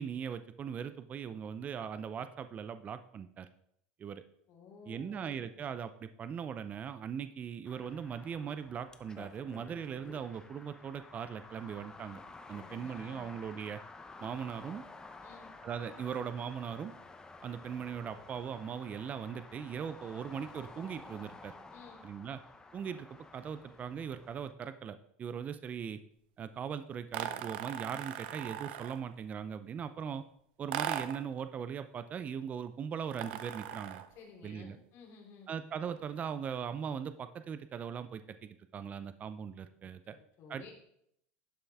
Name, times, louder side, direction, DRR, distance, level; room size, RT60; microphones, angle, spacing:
voice 1, 0.0-3.5 4.0-4.2 4.9-12.2 12.5-13.8 14.2-14.8 15.6-16.9 17.4-21.5 22.0-22.4 22.7-23.1 23.3-26.0 26.4-30.2 30.6-34.0 34.4-34.8 35.5-40.1 40.5-40.7, right 7 dB, 30° right, 12 dB, 0.5 m, -40 dB
voice 2, 4.5-5.4 12.4-13.2 15.2-15.5 21.7-22.0 34.1-35.5 39.8-40.7, left 5 dB, 50° left, -1 dB, 3.1 m, -54 dB
sound 1, 7.6-24.5, left 3 dB, 15° left, 0.7 m, -52 dB
sound 2, 27.1-29.1 30.7-31.3 33.1-34.1, right 10 dB, 80° right, 0.6 m, -39 dB
11.5 x 5.7 x 3.5 m, 0.72 s
supercardioid pair, 125°, 5 cm